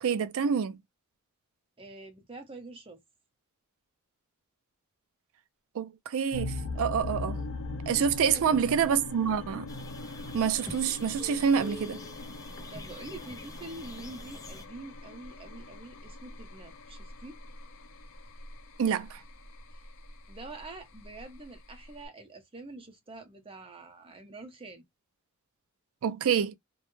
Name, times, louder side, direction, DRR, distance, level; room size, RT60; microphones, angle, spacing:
voice 1, 0.0-0.8 5.7-7.4 7.9-9.7 10.3-12.0 18.8-19.2 26.0-26.6, right 7 dB, 65° right, 0.4 m, -27 dB
voice 2, 1.8-3.0 8.3-8.9 12.7-17.4 19.7-19.9 20.3-24.8, right 2 dB, 25° right, 0.7 m, -46 dB
sound 1, 6.3-22.1, left 2 dB, 65° left, 0.5 m, -41 dB
sound 2, 9.7-14.6, left 2 dB, 15° left, 0.4 m, -46 dB
2.2 x 2.0 x 3.0 m
head